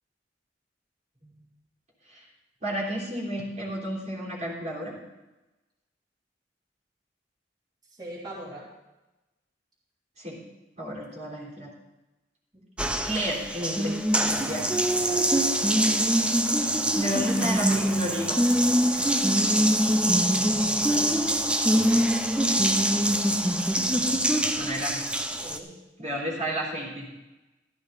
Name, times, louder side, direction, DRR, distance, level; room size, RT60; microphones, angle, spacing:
voice 1, 2.6-4.9 10.2-10.4 10.8-11.7 13.0-14.7 15.4-15.5 16.9-19.0 24.6-25.0 26.0-27.1, equal, 40° right, -4 dB, 3.4 m, -32 dB
voice 2, 7.9-8.7 12.5-12.6 15.0-15.4 20.2-21.2 25.4-25.7, right 1 dB, 25° right, -6 dB, 3.2 m, -42 dB
Water tap faucet, 12.8-25.6, right 1 dB, 5° right, 0.8 m, -24 dB
14.0 x 12.5 x 4.0 m, 1.0 s
head